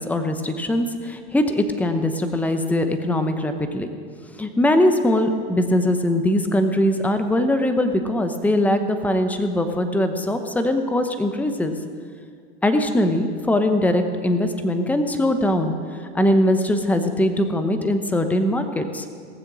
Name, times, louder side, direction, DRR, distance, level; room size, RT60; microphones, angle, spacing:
voice 1, 0.0-3.9 4.4-11.7 12.6-15.7 16.1-19.0, left 1 dB, 5° left, 7 dB, 0.9 m, -21 dB
18.0 x 7.6 x 6.2 m, 2.1 s
hypercardioid pair, 110°, 34 cm